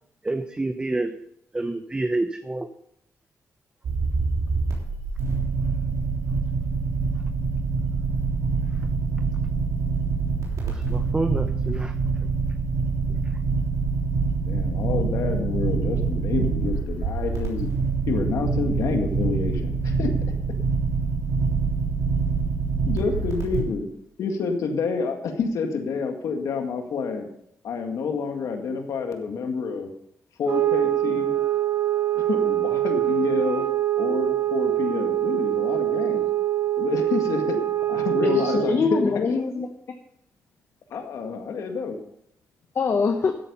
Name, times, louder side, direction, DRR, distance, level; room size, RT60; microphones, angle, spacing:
voice 1, 0.2-1.2 1.5-2.7 10.6-11.9 13.1-13.2, right 2 dB, 15° right, 8 dB, 0.8 m, -28 dB
sound 1, 3.8-23.6, right 4 dB, 85° right, 3.5 m, -25 dB
voice 2, 14.5-17.7 18.1-20.1 22.9-23.9 24.2-27.3 27.6-29.9 30.4-31.3 32.1-33.6 34.0-36.3 36.8-37.6 37.9-39.3 40.9-42.0, left 5 dB, 90° left, 4 dB, 1.8 m, -28 dB
sound 2, 30.4-38.8, right 13 dB, 60° right, 1.6 m, -24 dB
voice 3, 38.2-39.7 42.7-43.3, left 4 dB, 50° left, 5 dB, 1.0 m, -23 dB
13.0 x 8.5 x 5.5 m, 0.73 s
cardioid pair, 100°, 5 cm